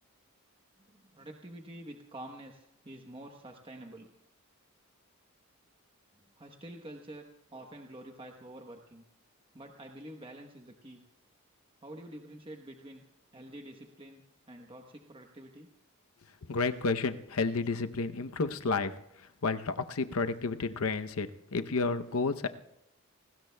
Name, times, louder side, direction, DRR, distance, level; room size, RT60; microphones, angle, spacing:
voice 1, 0.8-4.1 6.4-9.0 9.5-11.0 11.8-13.0 13.3-15.7, right 1 dB, 25° right, 3 dB, 1.0 m, -48 dB
voice 2, 16.5-18.9 19.4-22.5, left 4 dB, 70° left, 9 dB, 0.8 m, -31 dB
28.5 x 19.5 x 2.3 m, 0.83 s
head